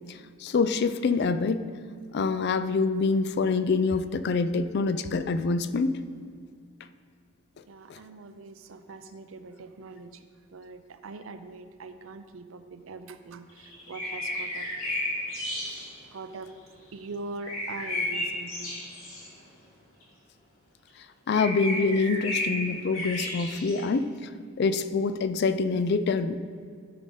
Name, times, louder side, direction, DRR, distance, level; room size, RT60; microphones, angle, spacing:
voice 1, 0.1-1.6 2.1-6.0 7.9-8.0 21.3-24.3 24.6-26.4, left 4 dB, 50° left, 12 dB, 0.4 m, -26 dB
voice 2, 7.7-10.2 10.5-14.7 16.1-16.5 16.9-18.8, right 3 dB, 70° right, 10 dB, 0.5 m, -42 dB
sound 1, 13.5-15.9 17.4-19.3 20.0-20.1 20.9-21.0 21.3-23.8, left 1 dB, 75° left, 2.4 m, -33 dB
12.5 x 4.9 x 3.9 m, 2.1 s
head